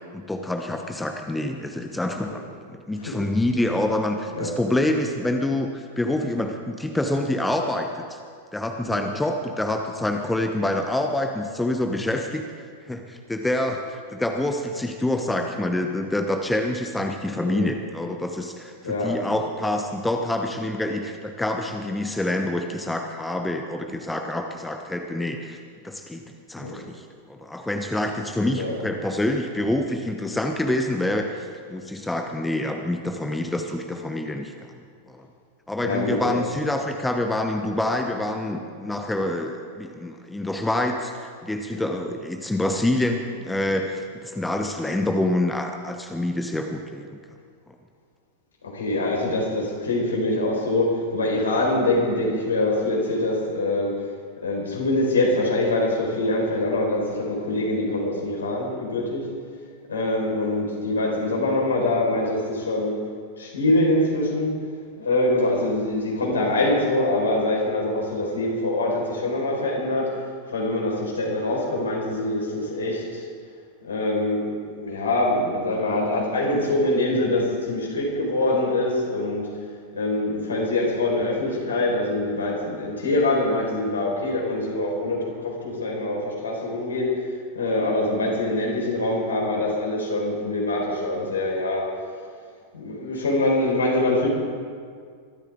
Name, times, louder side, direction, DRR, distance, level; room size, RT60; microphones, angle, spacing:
voice 1, 0.1-2.4 2.7-8.2 8.5-12.4 12.9-25.6 25.8-26.2 26.5-27.0 27.3-31.4 31.7-34.7 35.1-35.3 35.7-47.1, left 1 dB, 5° left, 4 dB, 1.1 m, -26 dB
voice 2, 18.8-19.4 26.6-26.7 28.5-28.8 35.8-36.4 38.8-38.9 41.7-41.8 48.6-54.0 54.4-59.3 59.9-63.0 63.4-64.5 65.0-70.2 70.5-73.3 73.8-79.5 79.9-87.3 87.5-91.9 92.7-94.3, left 2 dB, 70° left, -2 dB, 5.2 m, -24 dB
23.5 x 13.5 x 3.9 m, 2.1 s
figure-of-eight pair, 90°, 0 cm